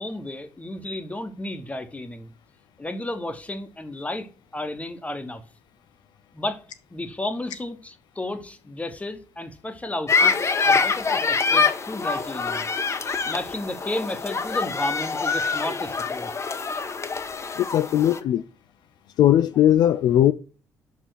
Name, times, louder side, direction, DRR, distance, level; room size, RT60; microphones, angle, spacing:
voice 1, 0.0-2.3 2.8-4.3 4.5-5.4 6.3-6.6 6.9-12.7 12.9-16.3, left 1 dB, 15° left, 1.3 m, -33 dB
sound 1, 10.1-18.2, left 4 dB, 30° left, 1.0 m, -25 dB
voice 2, 17.6-18.4 19.2-20.3, left 11 dB, 55° left, 0.4 m, -18 dB
5.7 x 4.5 x 6.3 m
figure-of-eight pair, 45°, 9 cm